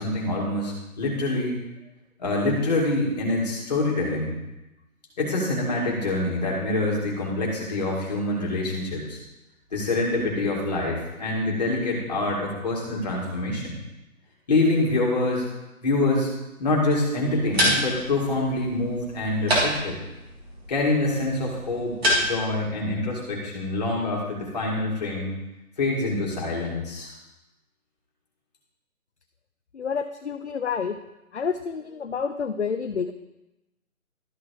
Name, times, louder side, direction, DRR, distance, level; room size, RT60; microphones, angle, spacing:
voice 1, 0.0-1.6 2.2-4.4 5.2-9.2 9.7-13.7 14.5-15.5 15.8-16.3 16.6-20.0 20.7-21.9 22.2-25.3 25.8-27.1, left 2 dB, 30° left, -3 dB, 2.2 m, -25 dB
sound 1, 17.2-22.6, equal, 45° right, 3.1 m, -28 dB
voice 2, 29.7-31.0 31.3-33.1, left 6 dB, 50° left, 8 dB, 0.5 m, -29 dB
13.0 x 6.0 x 3.2 m, 0.98 s
hypercardioid pair, 170°, 44 cm